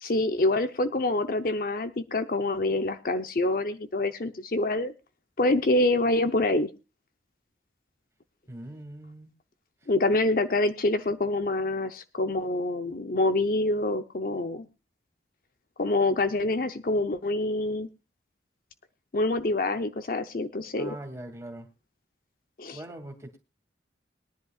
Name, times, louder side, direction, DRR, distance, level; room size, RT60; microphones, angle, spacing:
voice 1, 0.0-4.9 5.4-6.7 9.9-14.7 15.8-17.9 19.1-21.0 22.6-22.8, left 2 dB, 50° left, 9 dB, 0.8 m, -26 dB
voice 2, 8.5-9.3 20.7-21.7 22.7-23.4, right 1 dB, 15° right, 4 dB, 2.4 m, -41 dB
21.5 x 10.5 x 2.4 m, 0.28 s
head